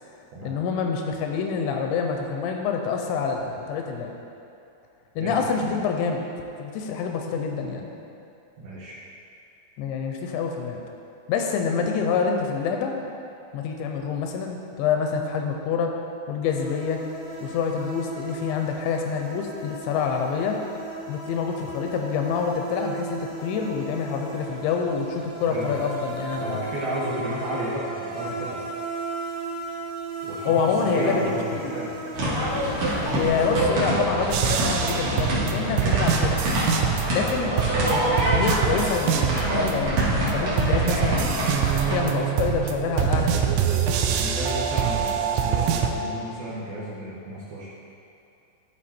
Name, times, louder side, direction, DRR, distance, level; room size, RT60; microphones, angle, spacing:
voice 1, 0.4-4.1 5.2-6.3 6.6-7.9 9.8-10.8 11.3-12.9 13.5-15.9 16.3-17.0 17.4-20.6 21.1-26.6 30.5-31.7 33.1-36.4 37.1-41.6 41.9-43.6, left 6 dB, 85° left, 3 dB, 2.8 m, -27 dB
voice 2, 5.2-5.7 8.6-9.0 25.5-25.7 26.3-28.6 30.2-32.0 33.0-33.2 37.6-37.8 44.1-47.7, right 1 dB, 65° right, -6 dB, 2.5 m, -33 dB
sound 1, 16.4-33.7, right 2 dB, 35° left, 0.8 m, -36 dB
sound 2, 32.1-42.0, right 1 dB, 45° right, 2.3 m, -25 dB
sound 3, 34.3-37.3 37.6-39.7 40.0-45.9, right 9 dB, 85° right, 2.9 m, -25 dB
14.0 x 4.8 x 4.3 m, 2.7 s
omnidirectional pair, 5.4 m